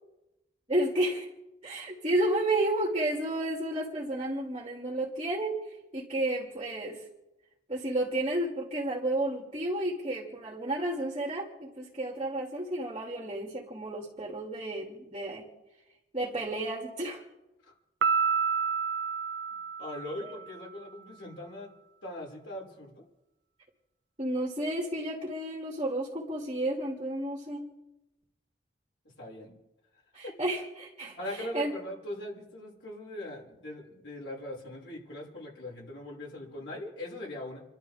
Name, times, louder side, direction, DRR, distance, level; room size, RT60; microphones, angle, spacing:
voice 1, 0.7-1.3 1.6-5.6 5.9-7.0 7.7-15.4 16.1-17.2 20.2-20.3 24.2-27.6 30.1-31.7, right 1 dB, 30° right, -2 dB, 2.6 m, -31 dB
Piano, 18.0-20.6, right 6 dB, 75° right, 0.7 m, -29 dB
voice 2, 19.8-21.7 22.0-23.0 29.2-29.6 30.2-30.3 31.2-37.6, left 1 dB, 80° left, -3 dB, 5.8 m, -40 dB
29.5 x 12.0 x 3.6 m, 0.96 s
head